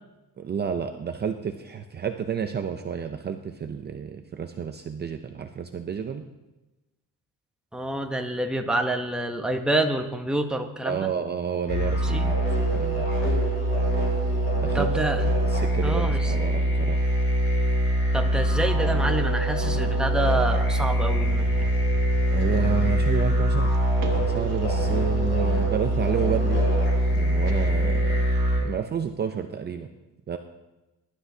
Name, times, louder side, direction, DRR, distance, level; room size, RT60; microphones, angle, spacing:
voice 1, 0.4-6.2 10.8-12.5 12.7-13.1 14.5-14.9 15.5-17.0 22.3-23.7 24.3-26.6 27.1-28.2 28.6-29.9 30.3-30.4, right 7 dB, 30° right, 6 dB, 0.6 m, -30 dB
voice 2, 7.7-11.1 12.0-12.2 14.7-15.2 15.8-16.3 18.1-21.5, right 1 dB, ahead, 3 dB, 0.8 m, -27 dB
sound 1, 11.7-28.6, right 1 dB, 40° left, 4.6 m, -23 dB
sound 2, 21.1-28.0, right 5 dB, 65° right, 1.6 m, -43 dB
22.0 x 11.5 x 2.8 m, 1.1 s
cardioid pair, 155°, 32 cm